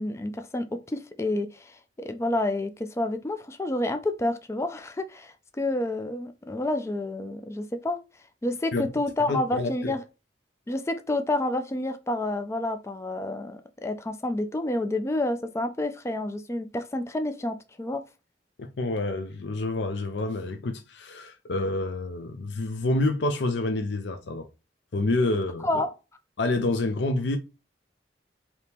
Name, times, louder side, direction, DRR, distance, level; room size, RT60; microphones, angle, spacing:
voice 1, 0.0-8.0 8.4-10.0 10.7-18.0 25.6-25.9, left 1 dB, 15° left, 0.3 m, -29 dB
voice 2, 9.3-9.9 18.6-24.5 24.9-25.7 26.4-27.4, left 2 dB, 70° left, 0.5 m, -28 dB
4.3 x 2.9 x 3.4 m
head